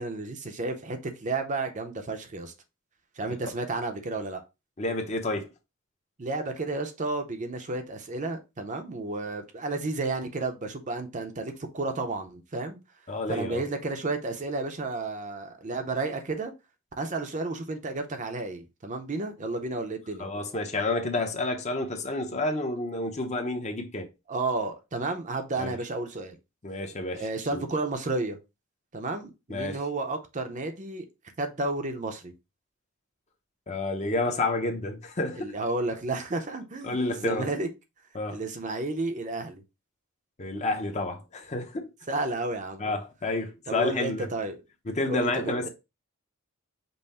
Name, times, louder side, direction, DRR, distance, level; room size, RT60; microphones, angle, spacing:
voice 1, 0.0-2.5 3.2-4.4 6.2-12.8 13.3-16.5 17.0-20.3 24.3-26.4 27.1-28.4 28.9-31.1 31.4-32.3 35.3-37.7 38.3-39.6 42.1-42.8 43.7-44.6 45.1-45.7, right 2 dB, 35° right, 0.6 m, -32 dB
voice 2, 4.8-5.5 13.1-13.6 20.2-24.1 25.6-25.7 26.6-27.2 27.5-27.6 29.5-29.8 33.7-35.5 36.8-37.5 38.1-38.4 40.4-41.9 42.8-44.3 44.9-45.7, left 2 dB, 35° left, 0.7 m, -30 dB
5.4 x 2.1 x 4.2 m
head